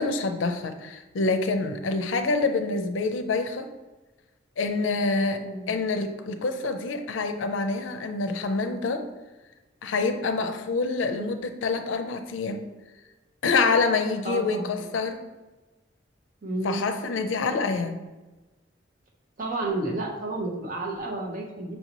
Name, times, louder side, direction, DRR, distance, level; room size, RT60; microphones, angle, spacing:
voice 1, 0.0-3.7 4.6-5.4 5.7-9.1 9.8-12.7 13.4-15.2 16.6-18.0, left 3 dB, 90° left, 7 dB, 0.4 m, -26 dB
voice 2, 5.4-5.8 14.2-14.9 16.4-16.9 19.4-21.8, right 2 dB, 45° right, 0 dB, 0.8 m, -31 dB
5.4 x 2.7 x 2.9 m, 1.1 s
head